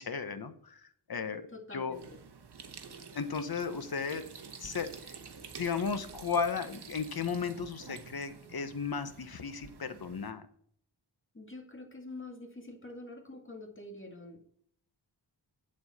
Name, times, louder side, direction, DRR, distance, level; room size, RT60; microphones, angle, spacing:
voice 1, 0.0-2.0 3.1-4.2 4.6-4.9 5.6-10.5, left 5 dB, 55° left, 10 dB, 1.1 m, -35 dB
voice 2, 1.5-2.2 11.3-14.4, left 2 dB, 25° left, 3 dB, 1.9 m, -46 dB
sound 1, 1.9-10.3, right 5 dB, 60° right, 1.2 m, -49 dB
8.6 x 7.4 x 4.2 m, 0.63 s
wide cardioid pair, 85°, 45 cm